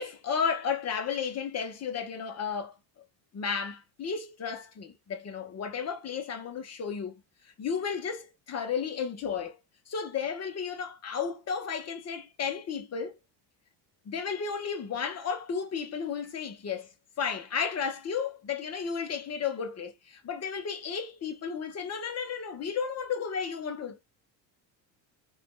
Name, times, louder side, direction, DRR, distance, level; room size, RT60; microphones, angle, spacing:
voice 1, 0.0-2.7 3.3-9.6 9.9-13.2 14.0-16.9 17.2-24.0, left 6 dB, 30° left, 1.1 m, -33 dB
3.4 x 2.6 x 2.2 m
supercardioid pair, 105°, 47 cm